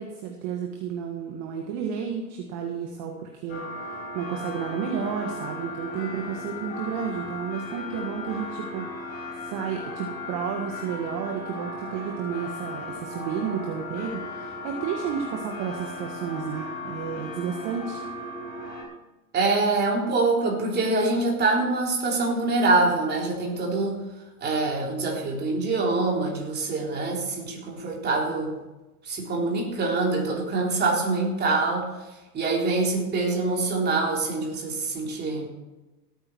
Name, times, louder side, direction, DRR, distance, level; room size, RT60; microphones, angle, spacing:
voice 1, 0.0-18.0, right 7 dB, 40° right, 2 dB, 1.7 m, -32 dB
sound 1, 3.5-18.8, left 2 dB, 20° left, 5.4 m, -36 dB
voice 2, 19.3-24.0 24.4-28.5 29.0-31.9 32.3-35.5, right 3 dB, 20° right, -1 dB, 3.6 m, -25 dB
17.0 x 9.1 x 4.6 m, 1.1 s
hypercardioid pair, 120°, 45 cm